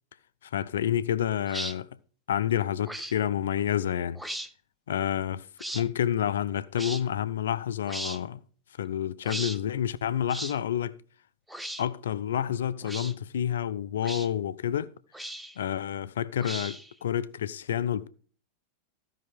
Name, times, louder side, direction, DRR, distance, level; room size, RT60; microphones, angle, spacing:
voice 1, 0.4-1.9 2.3-4.2 4.9-5.4 5.7-8.4 8.8-10.9 11.8-14.9 15.6-18.1, left 10 dB, 65° left, 0.5 m, -29 dB
sound 1, 1.5-1.7 2.8-3.1 4.1-4.5 5.6-5.8 6.7-7.0 7.9-8.2 9.2-9.6 10.3-10.5 11.5-11.8 12.8-13.1 14.0-14.3 15.1-15.6 16.4-16.9, right 1 dB, 5° right, 0.6 m, -37 dB
15.0 x 5.6 x 3.6 m
figure-of-eight pair, 90°, 0 cm